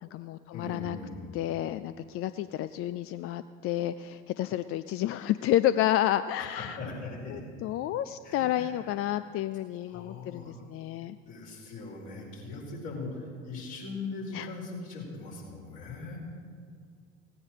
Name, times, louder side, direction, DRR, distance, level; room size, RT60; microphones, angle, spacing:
voice 1, 0.0-1.0 1.3-6.8 7.3-11.2 14.3-14.5, left 12 dB, 40° left, 12 dB, 0.4 m, -30 dB
voice 2, 0.5-1.3 6.5-7.4 8.2-8.8 9.9-10.6 11.3-16.2, left 3 dB, 55° left, -3 dB, 4.8 m, -40 dB
17.5 x 8.7 x 6.5 m, 2.1 s
figure-of-eight pair, 60°, 37 cm